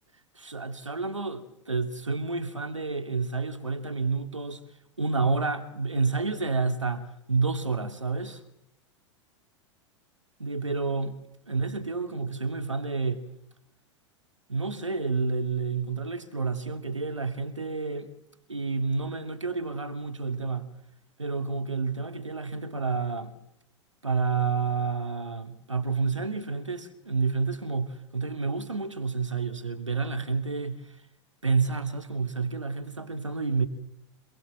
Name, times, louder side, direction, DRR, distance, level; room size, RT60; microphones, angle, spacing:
voice 1, 0.4-4.6 5.0-8.4 10.4-11.2 11.5-13.2 14.5-18.1 18.5-20.7 21.2-23.3 24.0-30.9 31.4-33.7, right 4 dB, 85° right, 2.5 m, -29 dB
28.0 x 19.5 x 7.4 m
figure-of-eight pair, 90°, 15 cm